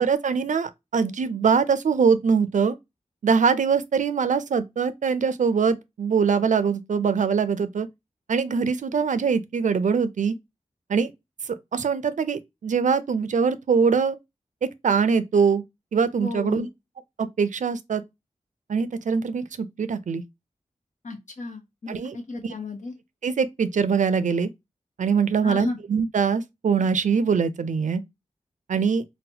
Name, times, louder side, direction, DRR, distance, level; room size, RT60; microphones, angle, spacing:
voice 1, 0.0-2.7 3.2-7.9 8.3-10.3 10.9-11.1 11.7-14.2 14.8-15.6 15.9-16.7 17.2-18.0 18.7-20.2 21.9-22.2 22.4-22.5 23.2-24.5 25.0-28.0 28.7-29.0, right 6 dB, 75° right, 0.4 m, -23 dB
voice 2, 16.2-16.7 21.0-22.9 25.4-25.8, left 3 dB, 70° left, 0.9 m, -33 dB
3.9 x 2.1 x 2.7 m
wide cardioid pair, 65°, 13 cm